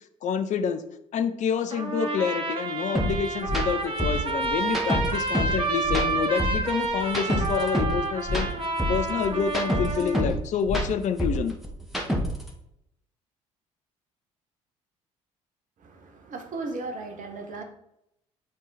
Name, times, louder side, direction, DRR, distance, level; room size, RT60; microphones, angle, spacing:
voice 1, 0.2-0.8 1.1-8.5 8.9-11.5, left 7 dB, 45° left, 9 dB, 0.7 m, -28 dB
Trumpet, 1.7-10.3, right 3 dB, 30° right, 1.5 m, -29 dB
sound 1, 2.9-3.1 3.4-3.6 4.0-5.6 5.8-8.0 8.2-10.4 10.6-12.5, equal, ahead, 1.5 m, -27 dB
voice 2, 15.8-17.6, right 3 dB, 50° right, 5 dB, 1.2 m, -36 dB
8.5 x 3.6 x 4.2 m, 0.78 s
figure-of-eight pair, 50°, 17 cm